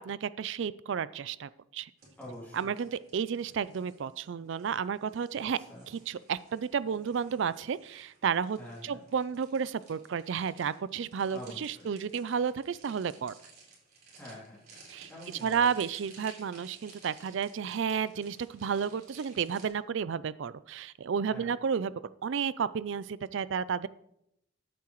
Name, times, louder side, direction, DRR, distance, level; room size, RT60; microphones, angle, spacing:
voice 1, 0.0-1.9 2.5-5.6 6.1-8.6 8.8-13.3 14.9-15.1 15.4-21.9 22.2-23.9, right 7 dB, 65° right, 17 dB, 0.4 m, -32 dB
sound 1, 2.0-19.7, right 4 dB, 50° right, 3.7 m, -56 dB
voice 2, 2.2-2.7 5.6-5.9 8.5-9.0 11.3-11.9 14.1-14.7 15.1-15.7 21.2-21.5, left 1 dB, 10° left, -7 dB, 2.9 m, -46 dB
14.0 x 8.6 x 3.1 m, 0.76 s
head